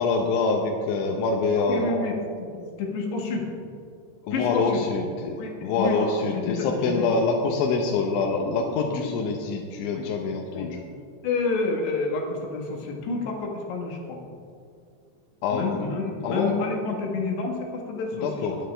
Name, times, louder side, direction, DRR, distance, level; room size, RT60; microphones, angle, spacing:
voice 1, 0.0-2.0 4.2-10.8 15.4-16.5 18.1-18.6, left 4 dB, 90° left, 0 dB, 3.4 m, -25 dB
voice 2, 1.6-2.2 2.5-3.5 4.3-4.8 5.4-7.0 9.0-9.2 9.9-10.1 10.5-10.8 11.2-14.2 15.5-18.6, left 3 dB, 70° left, 1 dB, 3.6 m, -29 dB
20.0 x 10.5 x 3.4 m, 2.3 s
omnidirectional pair, 5.3 m